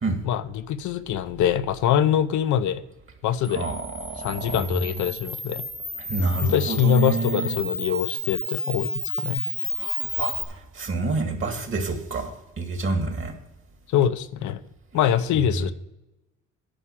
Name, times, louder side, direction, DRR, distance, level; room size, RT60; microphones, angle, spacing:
voice 1, 0.2-2.8 3.2-3.6 4.2-5.6 6.4-9.4 13.9-14.6 14.9-15.7, left 9 dB, 75° left, 11 dB, 0.7 m, -24 dB
Camera, 3.4-10.4, left 1 dB, 5° left, 0.9 m, -31 dB
voice 2, 3.5-4.9 6.0-7.5 9.7-13.3, right 3 dB, 45° right, 4 dB, 2.2 m, -28 dB
10.0 x 4.9 x 7.1 m, 0.96 s
cardioid pair, 90°, 30 cm